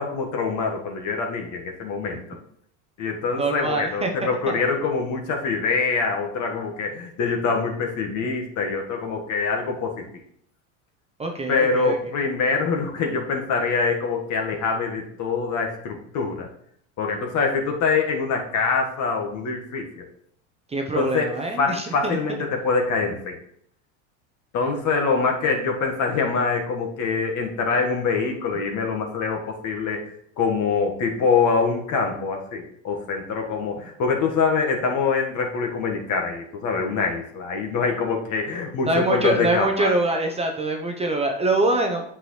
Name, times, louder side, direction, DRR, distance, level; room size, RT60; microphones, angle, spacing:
voice 1, 0.0-2.2 3.0-10.0 11.5-16.5 17.0-20.0 20.9-23.4 24.5-30.0 30.4-39.9, left 4 dB, 45° left, 2 dB, 1.7 m, -24 dB
voice 2, 3.4-4.1 11.2-12.0 20.7-22.2 38.8-42.0, right 2 dB, 15° right, 3 dB, 0.8 m, -24 dB
8.0 x 6.1 x 3.2 m, 0.68 s
supercardioid pair, 115°, 40 cm